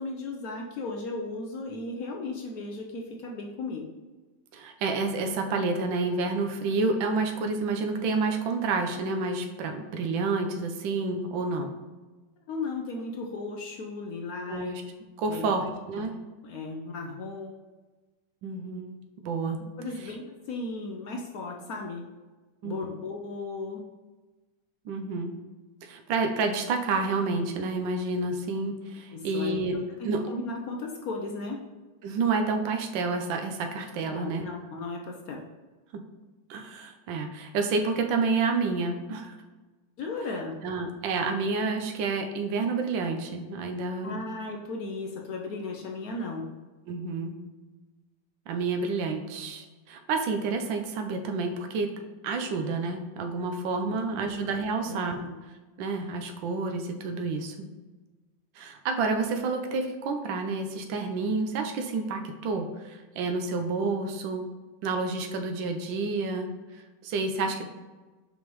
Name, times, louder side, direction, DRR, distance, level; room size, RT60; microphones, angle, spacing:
voice 1, 0.0-3.9 12.5-14.7 15.3-16.2 16.4-17.5 19.6-22.1 22.6-23.9 29.1-29.6 30.0-31.6 34.1-35.4 40.0-40.6 44.0-46.5 53.9-54.0 54.8-55.3 67.4-67.7, left 3 dB, 65° left, 1 dB, 1.0 m, -36 dB
voice 2, 4.5-11.7 14.5-14.8 15.2-16.1 18.4-19.0 19.2-19.6 22.6-22.8 24.8-25.3 25.8-29.8 30.0-30.2 32.0-34.4 35.9-36.0 36.5-39.4 40.6-44.2 46.9-47.4 48.5-51.9 52.2-55.2 55.8-57.7 58.6-64.4 64.8-67.7, right 3 dB, 80° right, 4 dB, 1.4 m, -29 dB
6.1 x 5.3 x 3.1 m, 1.3 s
omnidirectional pair, 2.1 m